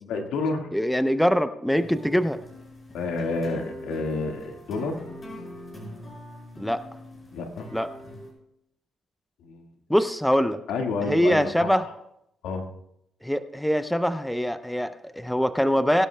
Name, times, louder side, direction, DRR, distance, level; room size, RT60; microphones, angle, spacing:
voice 1, 0.0-0.7 2.9-5.0 7.3-7.7 9.4-9.7 10.7-11.8 12.4-12.7, left 3 dB, 85° left, 3 dB, 1.7 m, -29 dB
voice 2, 0.7-2.4 6.6-6.8 7.7-7.9 9.9-10.6 11.0-11.8 13.2-16.1, equal, 5° left, 11 dB, 0.6 m, -23 dB
sound 1, 1.7-8.3, left 1 dB, 30° left, 5.6 m, -43 dB
21.5 x 12.0 x 2.2 m, 0.78 s
cardioid pair, 90°, 0 cm